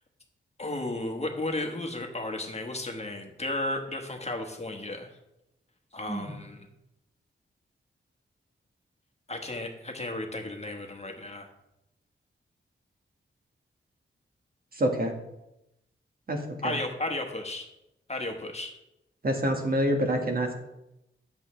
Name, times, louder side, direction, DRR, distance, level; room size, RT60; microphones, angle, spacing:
voice 1, 0.6-5.1 5.9-6.7 9.3-11.5 16.6-17.7 18.1-18.7, left 2 dB, 30° left, 3 dB, 1.3 m, -34 dB
voice 2, 14.8-15.1 16.3-16.8 19.2-20.5, right 1 dB, 45° right, 2 dB, 1.4 m, -27 dB
9.9 x 8.1 x 3.2 m, 0.88 s
wide cardioid pair, 90°, 21 cm